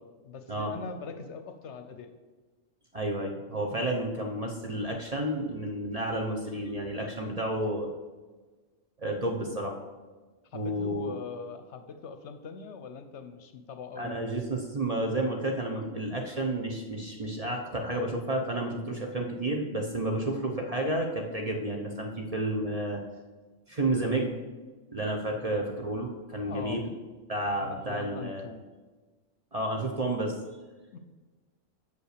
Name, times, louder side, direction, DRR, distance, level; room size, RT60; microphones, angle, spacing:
voice 1, 0.2-2.1 10.5-14.2 25.3-25.7 26.4-26.9 27.6-28.6 30.9-31.0, left 5 dB, 65° left, 8 dB, 0.9 m, -42 dB
voice 2, 2.9-7.9 9.0-9.8 10.5-11.1 14.0-23.0 23.7-24.4 24.9-26.9 27.3-28.4 29.5-30.4, right 1 dB, 35° right, 1 dB, 0.7 m, -31 dB
6.4 x 5.4 x 6.6 m, 1.3 s
omnidirectional pair, 1.3 m